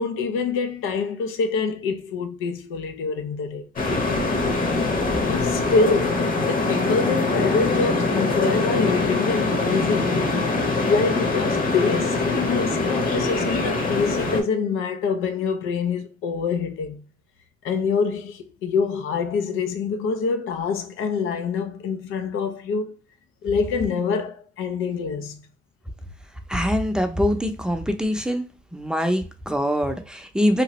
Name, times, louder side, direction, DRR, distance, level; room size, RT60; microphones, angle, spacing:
voice 1, 0.0-3.6 5.3-10.2 10.8-17.0 17.6-23.0 23.4-25.4, left 5 dB, 90° left, 0.5 m, -25 dB
sound 1, 3.8-14.4, left 3 dB, 45° left, 0.9 m, -23 dB
voice 2, 26.5-28.4 28.7-30.6, equal, 5° right, 0.5 m, -23 dB
2.9 x 2.5 x 3.0 m
cardioid pair, 90°, 20 cm